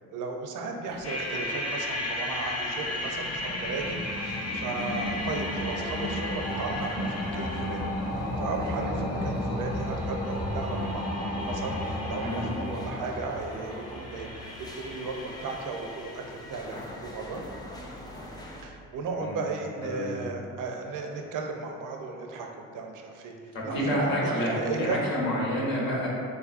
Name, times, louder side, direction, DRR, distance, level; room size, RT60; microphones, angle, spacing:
voice 1, 0.1-7.8 8.4-14.3 14.6-17.4 18.6-25.0, right 4 dB, 55° right, 2 dB, 0.5 m, -35 dB
sound 1, 0.9-18.6, left 1 dB, 10° left, 0.4 m, -45 dB
sound 2, 1.0-16.3, left 1 dB, 40° left, 0.7 m, -33 dB
voice 2, 12.1-12.5 19.1-19.4 19.8-20.1 23.5-26.1, equal, 70° left, -4 dB, 0.9 m, -29 dB
3.2 x 2.4 x 2.4 m, 2.3 s
supercardioid pair, 55°, 37 cm